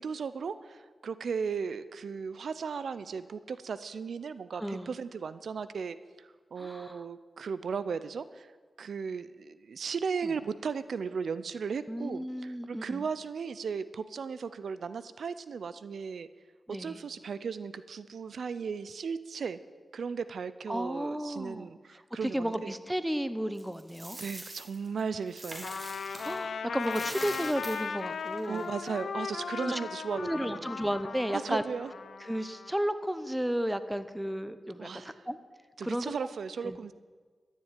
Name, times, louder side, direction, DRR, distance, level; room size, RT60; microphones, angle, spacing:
voice 1, 0.0-8.5 8.8-16.3 16.7-19.6 19.9-22.7 24.2-25.7 28.5-30.7 31.3-31.9 34.8-35.2 35.8-36.9, right 6 dB, 85° right, 14 dB, 0.5 m, -36 dB
voice 2, 4.6-4.9 6.6-7.0 10.2-10.3 11.9-13.1 16.7-17.0 20.7-21.7 22.2-24.2 26.2-28.7 29.6-29.8 30.1-31.6 32.2-35.4 35.8-36.1 36.6-36.8, equal, 5° right, 12 dB, 0.9 m, -33 dB
Coin (dropping), 23.6-26.4 26.7-29.0, right 1 dB, 25° right, 3.1 m, -44 dB
Trumpet, 25.6-32.7, left 5 dB, 85° left, 0.7 m, -38 dB
13.0 x 7.4 x 9.1 m, 1.5 s
cardioid pair, 65°, 0 cm